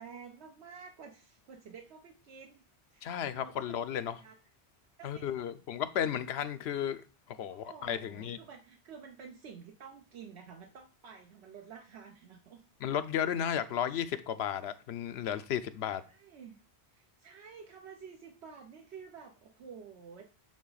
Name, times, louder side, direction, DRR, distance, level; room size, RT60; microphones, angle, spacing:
voice 1, 0.0-2.6 2.9-3.9 4.2-4.4 5.0-5.4 7.5-12.6 16.0-16.6 16.9-20.2, right 6 dB, 75° right, 1.0 m, -50 dB
voice 2, 3.0-4.2 5.0-7.0 7.3-8.4 12.8-16.0, left 9 dB, 75° left, 0.8 m, -34 dB
8.7 x 3.4 x 3.9 m
omnidirectional pair, 1.1 m